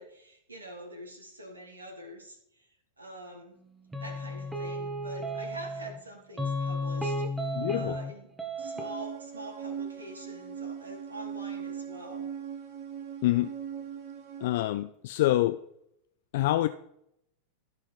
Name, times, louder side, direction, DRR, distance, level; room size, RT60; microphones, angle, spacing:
voice 1, 0.0-3.6 4.0-8.3 8.6-12.3, right 1 dB, 75° right, 2.7 m, -45 dB
sound 1, 3.9-6.0 6.4-8.1 8.4-9.0, equal, 10° right, 1.4 m, -33 dB
voice 2, 7.5-8.0 13.2-13.5 14.4-15.6 16.3-16.7, left 15 dB, 55° left, 0.4 m, -26 dB
sound 2, 8.6-14.5, right 8 dB, 45° right, 1.8 m, -40 dB
15.0 x 5.0 x 4.1 m
figure-of-eight pair, 90°, 0 cm